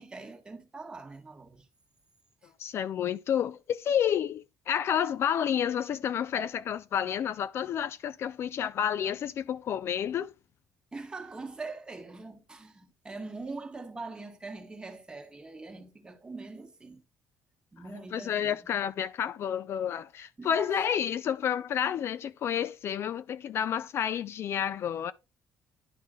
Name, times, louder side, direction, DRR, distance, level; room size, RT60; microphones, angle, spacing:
voice 1, 0.0-1.7 2.4-2.5 10.9-17.0 17.7-18.6 20.4-20.9, right 3 dB, 15° right, 1.4 m, -43 dB
voice 2, 2.6-10.3 18.1-25.1, left 9 dB, 50° left, 0.4 m, -30 dB
11.0 x 3.7 x 3.7 m
cardioid pair, 135°, 5 cm